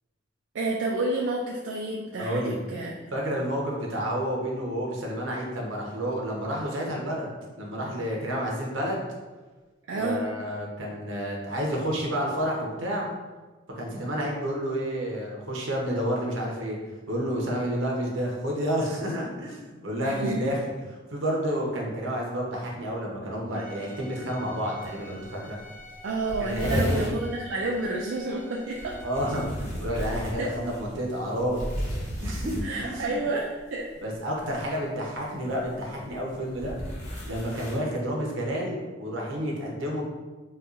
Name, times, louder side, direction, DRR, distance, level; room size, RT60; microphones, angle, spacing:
voice 1, 0.5-3.0 9.9-10.3 20.0-20.4 26.0-29.0 30.4-30.5 32.6-33.9, right 2 dB, 75° right, -2 dB, 0.4 m, -29 dB
voice 2, 2.2-2.6 3.1-7.3 7.6-9.0 9.9-13.1 13.8-16.8 17.1-20.6 21.1-25.6 26.4-27.0 29.0-31.6 32.2-33.2 34.0-36.8 37.3-40.0, equal, 90° right, -2 dB, 0.8 m, -30 dB
Bowed string instrument, 23.5-29.5, left 1 dB, 25° right, 0.7 m, -47 dB
sound 1, 24.8-24.9 25.2-25.3 25.6-25.7 25.9-27.2 28.7-33.1 34.4-34.7 35.5-37.8, equal, 40° left, 0.9 m, -33 dB
4.2 x 2.3 x 2.5 m, 1.3 s
head